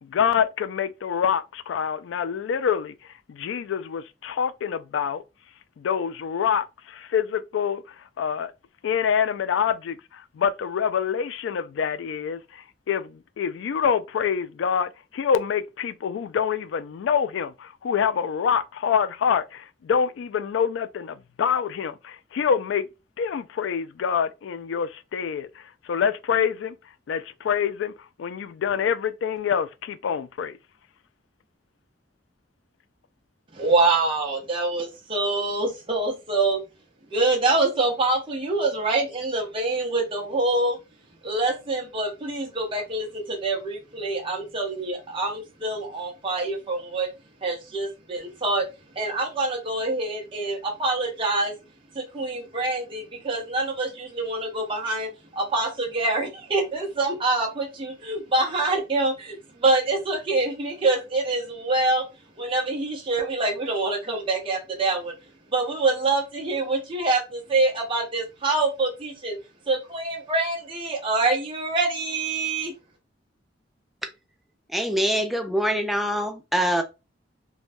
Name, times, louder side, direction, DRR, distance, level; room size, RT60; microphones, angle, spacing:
voice 1, 0.0-5.2 5.8-8.5 8.8-22.9 23.2-26.8 27.1-30.6, left 7 dB, 75° left, 0.3 m, -26 dB
voice 2, 33.5-36.6 37.1-40.8 41.2-47.1 47.4-48.7 49.0-51.5 51.9-62.0 62.4-65.1 65.5-69.4 69.7-72.7, right 2 dB, 30° right, 0.7 m, -25 dB
voice 3, 74.7-76.8, equal, ahead, 0.4 m, -24 dB
3.1 x 2.2 x 2.5 m
head